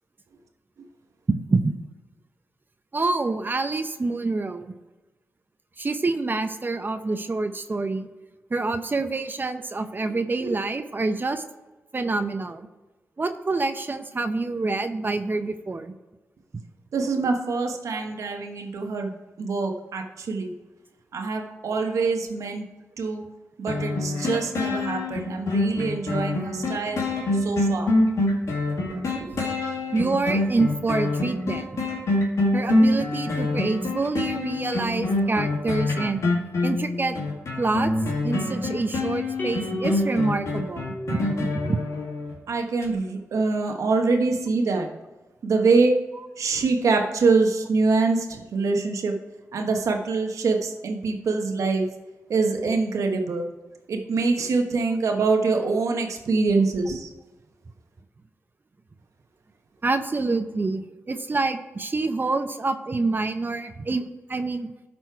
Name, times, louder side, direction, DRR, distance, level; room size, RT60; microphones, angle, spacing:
voice 1, 1.3-1.7 2.9-4.7 5.8-8.1 8.5-11.4 11.9-12.7 13.2-15.9 17.9-18.0 29.9-31.8 32.5-36.2 36.6-37.2 37.6-37.9 38.2-41.8 46.1-46.3 59.8-64.0 64.3-64.7, right 3 dB, 40° right, 9 dB, 0.7 m, -27 dB
voice 2, 16.9-20.5 21.1-22.6 23.0-23.2 23.6-27.0 27.4-27.9 28.9-29.0 29.3-29.4 42.5-44.9 45.4-45.9 46.4-49.1 49.5-51.8 52.3-53.5 53.9-57.1, right 4 dB, 75° right, 4 dB, 1.2 m, -24 dB
sound 1, 23.7-42.4 42.8-42.9, left 2 dB, 70° left, 2.2 m, -25 dB
sound 2, 39.4-41.9, left 1 dB, 30° left, 2.2 m, -35 dB
12.0 x 4.4 x 4.6 m, 1.1 s
cardioid pair, 55°, 5 cm